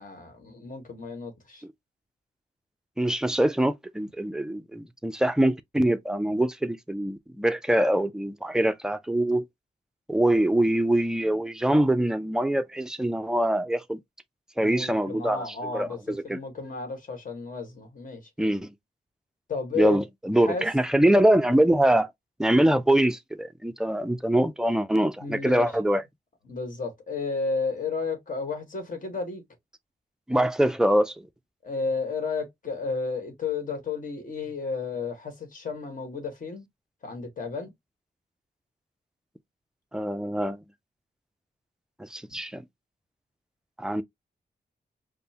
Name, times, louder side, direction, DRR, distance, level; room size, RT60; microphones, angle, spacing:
voice 1, 0.0-1.6 14.6-18.2 19.5-20.0 20.4-20.6 25.2-25.8 26.4-29.4 31.6-36.7 37.0-37.7, left 4 dB, 50° left, 1.3 m, -32 dB
voice 2, 3.0-9.4 10.1-14.0 14.6-16.4 18.4-18.7 19.8-22.1 22.4-26.0 30.3-31.1 39.9-40.6 42.0-42.6 43.8-44.0, right 1 dB, 5° right, 0.3 m, -24 dB
5.2 x 2.0 x 2.8 m
wide cardioid pair, 150°, 17 cm